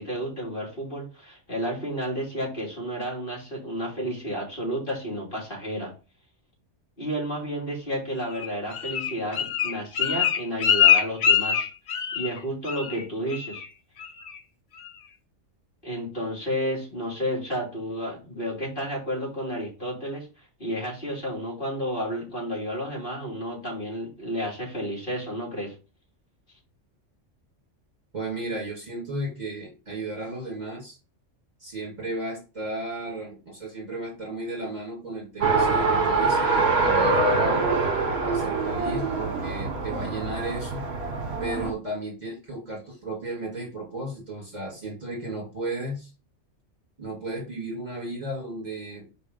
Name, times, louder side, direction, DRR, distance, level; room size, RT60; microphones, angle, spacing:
voice 1, 0.0-5.9 7.0-11.7 12.1-13.6 15.8-20.3 20.6-25.7, equal, 45° left, -4 dB, 3.2 m, -31 dB
Bird, 8.3-12.4 12.7-13.0 13.3-13.7 14.0-14.4 14.8-14.9, left 9 dB, 70° left, 1.1 m, -23 dB
voice 2, 28.1-31.0 31.6-37.6 38.2-40.9 41.4-46.1 47.0-49.1, right 1 dB, 35° right, -3 dB, 2.7 m, -34 dB
Race car auto racing, 35.4-41.7, right 3 dB, 55° right, 1.5 m, -24 dB
5.0 x 4.3 x 5.3 m, 0.32 s
omnidirectional pair, 1.3 m